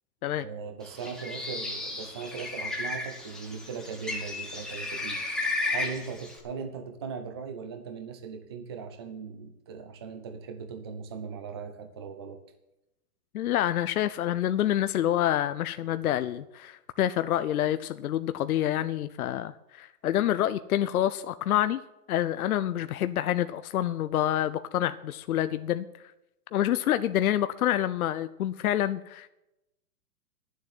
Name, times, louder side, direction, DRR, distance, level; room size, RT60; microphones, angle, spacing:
voice 1, 0.4-12.4, right 5 dB, 20° right, 7 dB, 0.4 m, -39 dB
Bird, 0.9-6.4, left 2 dB, ahead, 1.3 m, -34 dB
voice 2, 13.3-21.8 22.1-25.9 26.5-29.3, left 12 dB, 65° left, 12 dB, 0.7 m, -27 dB
11.5 x 7.5 x 9.5 m, 0.91 s
hypercardioid pair, 160°, 47 cm